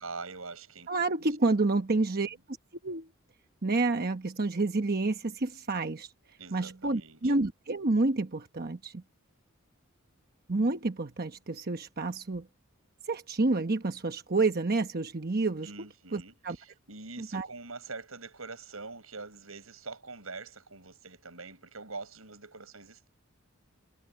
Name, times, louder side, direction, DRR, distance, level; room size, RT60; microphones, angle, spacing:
voice 1, 0.0-1.4 6.3-7.3 15.6-23.1, right 3 dB, 90° right, 7.4 m, -44 dB
voice 2, 0.9-2.6 2.8-3.1 3.6-6.1 6.5-9.0 10.5-12.5 13.0-15.7 16.1-16.6 17.2-17.5, right 3 dB, 45° right, 1.0 m, -29 dB
head